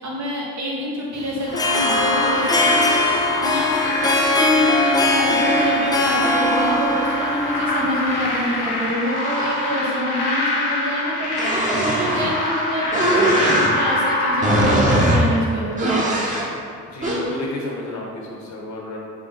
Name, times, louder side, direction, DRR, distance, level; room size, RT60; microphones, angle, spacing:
voice 1, 0.0-11.7 12.0-16.2, equal, 65° right, -5 dB, 1.3 m, -27 dB
Harp, 1.4-8.7, left 2 dB, 15° left, 0.4 m, -21 dB
sound 1, 1.5-15.8, left 1 dB, 85° left, 0.9 m, -25 dB
sound 2, 11.3-12.2 12.9-13.7 14.4-15.2 15.7-16.5 17.0-17.2, right 1 dB, 25° right, 1.0 m, -20 dB
voice 2, 13.3-13.7 16.9-19.0, left 2 dB, 65° left, -3 dB, 1.1 m, -32 dB
5.4 x 2.3 x 4.1 m, 2.3 s
cardioid pair, 90°, 30 cm